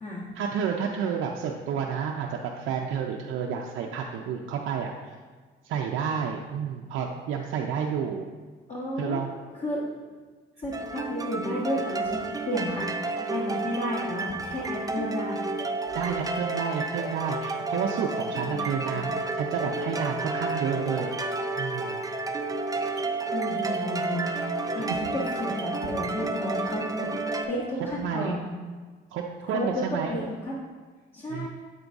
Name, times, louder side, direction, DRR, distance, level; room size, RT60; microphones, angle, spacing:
voice 1, 0.4-4.9 5.6-8.3 9.0-9.4 15.9-21.1 21.6-22.0 24.8-25.0 27.8-28.4 29.1-30.2 31.3-31.5, right 7 dB, 85° right, 0 dB, 0.5 m, -30 dB
voice 2, 8.7-9.2 9.5-9.9 10.6-12.9 13.2-15.4 18.5-19.1 23.3-24.3 24.7-27.1 27.5-28.5 29.5-30.6 31.1-31.5, left 1 dB, 35° left, -6 dB, 1.3 m, -32 dB
sound 1, 10.7-27.4, right 3 dB, 20° right, 0.5 m, -31 dB
7.9 x 3.8 x 3.5 m, 1.5 s
cardioid pair, 90°, 20 cm